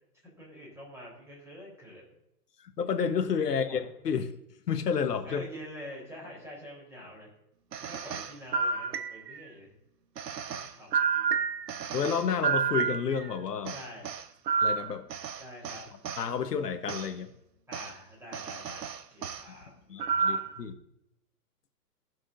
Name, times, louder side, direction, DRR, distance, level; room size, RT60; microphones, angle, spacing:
voice 1, 0.2-2.2 3.6-3.9 5.2-7.3 7.8-9.7 10.4-11.5 13.7-14.1 15.4-15.9 17.7-20.4, equal, 5° right, -4 dB, 3.6 m, -46 dB
voice 2, 2.6-4.3 4.7-5.4 11.9-13.8 14.6-15.1 16.2-17.3 19.9-20.7, left 6 dB, 80° left, 6 dB, 1.2 m, -30 dB
sound 1, 7.7-9.5 10.2-13.3 13.7-16.3 16.9-17.1 17.7-17.9 18.3-19.4 20.0-20.6, right 6 dB, 85° right, 0.8 m, -31 dB
18.0 x 6.1 x 2.6 m, 0.81 s
hypercardioid pair, 135°, 47 cm